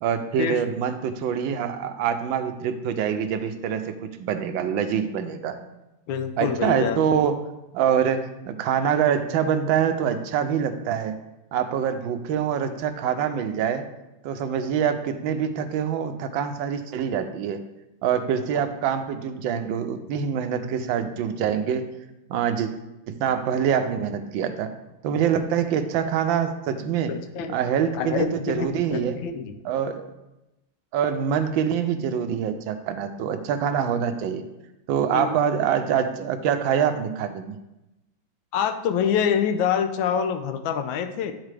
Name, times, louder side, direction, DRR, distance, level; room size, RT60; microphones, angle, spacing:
voice 1, 0.0-3.9 4.2-5.6 6.4-7.4 7.7-11.1 11.5-13.8 14.2-17.6 18.0-21.9 22.3-22.7 23.1-24.7 25.0-27.1 27.5-29.2 29.6-30.1 30.9-34.4 34.9-37.6, right 8 dB, 90° right, 8 dB, 1.4 m, -25 dB
voice 2, 6.1-7.0 27.1-27.5 27.9-29.5 35.1-35.3 38.5-41.3, left 7 dB, 90° left, 7 dB, 1.4 m, -26 dB
10.0 x 4.1 x 3.3 m, 0.94 s
omnidirectional pair, 2.1 m